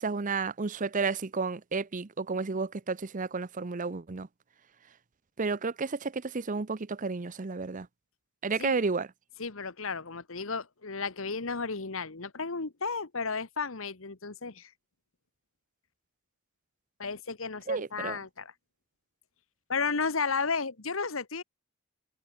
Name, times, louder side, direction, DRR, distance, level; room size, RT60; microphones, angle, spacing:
voice 1, 0.0-4.3 5.4-7.9 8.4-9.1 17.7-18.2, right 4 dB, 40° right, 0.7 m, -31 dB
voice 2, 9.4-14.7 17.0-18.5 19.7-21.4, left 4 dB, 70° left, 1.5 m, -33 dB
open air
head